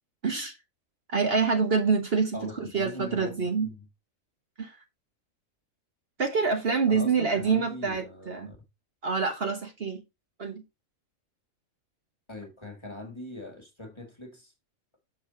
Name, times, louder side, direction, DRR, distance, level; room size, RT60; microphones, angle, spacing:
voice 1, 0.2-0.6 1.1-3.7 4.6-4.8 6.2-8.5 9.0-10.0 10.4-10.6, right 5 dB, 50° right, 1.4 m, -26 dB
voice 2, 2.3-3.8 6.9-8.6 12.3-14.5, left 1 dB, 20° left, 1.8 m, -41 dB
7.0 x 5.6 x 3.9 m
omnidirectional pair, 1.4 m